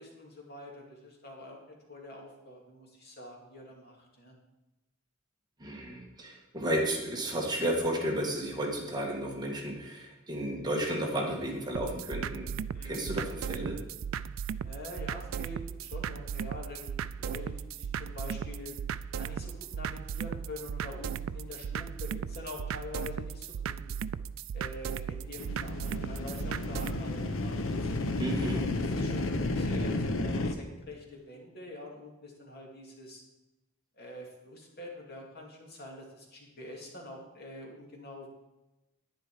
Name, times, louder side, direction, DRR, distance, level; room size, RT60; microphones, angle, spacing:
voice 1, 0.0-1.6 1.9-4.3 12.7-13.1 14.6-18.8 19.1-23.9 24.5-27.9 28.5-33.2 33.9-38.3, left 2 dB, 50° left, -1 dB, 2.6 m, -45 dB
voice 2, 5.6-12.5 12.8-13.8 28.2-28.8, right 1 dB, 20° right, 0 dB, 1.8 m, -33 dB
sound 1, 11.7-27.0, right 7 dB, 70° right, 0.3 m, -37 dB
sound 2, 25.4-30.5, left 2 dB, 75° left, 0.9 m, -32 dB
10.5 x 9.8 x 4.9 m, 1.0 s
head